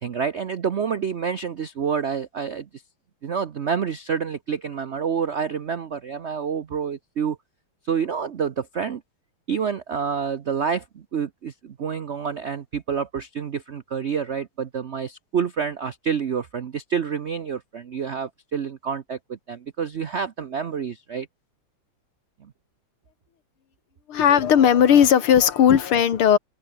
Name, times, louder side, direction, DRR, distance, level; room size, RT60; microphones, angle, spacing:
voice 1, 0.0-2.7 3.2-7.4 7.9-9.0 9.5-21.3, right 6 dB, 65° right, 0.6 m, -28 dB
voice 2, 24.1-26.4, left 9 dB, 85° left, 2.5 m, -17 dB
omnidirectional pair, 2.3 m